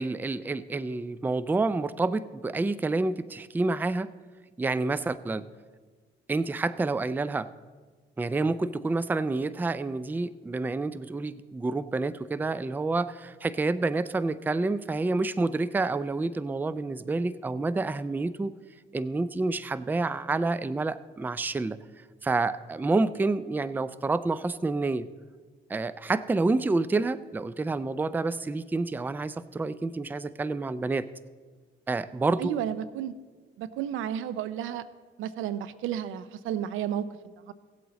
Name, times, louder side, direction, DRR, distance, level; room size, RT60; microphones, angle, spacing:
voice 1, 0.0-4.1 4.6-5.4 6.3-7.5 8.2-18.5 18.9-21.8 22.2-25.1 25.7-31.1 31.9-32.5, right 3 dB, 10° right, 16 dB, 0.3 m, -28 dB
voice 2, 32.4-33.1 33.6-34.9 35.2-37.5, right 10 dB, 85° right, 15 dB, 0.5 m, -32 dB
17.0 x 7.8 x 4.0 m, 1.4 s
cardioid pair, 90°, 20 cm